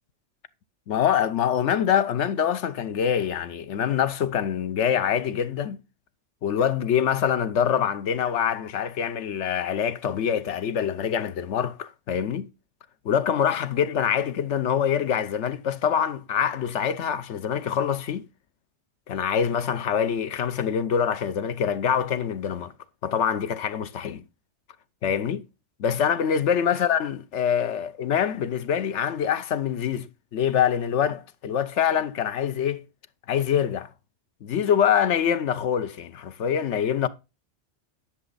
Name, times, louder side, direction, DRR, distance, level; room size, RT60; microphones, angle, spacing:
voice 1, 0.9-5.8 6.4-12.5 13.0-18.2 19.1-22.7 23.0-24.2 25.0-25.4 25.8-32.8 33.3-33.9 34.4-37.1, left 8 dB, 85° left, 1.1 m, -25 dB
11.0 x 7.0 x 4.0 m
omnidirectional pair, 1.2 m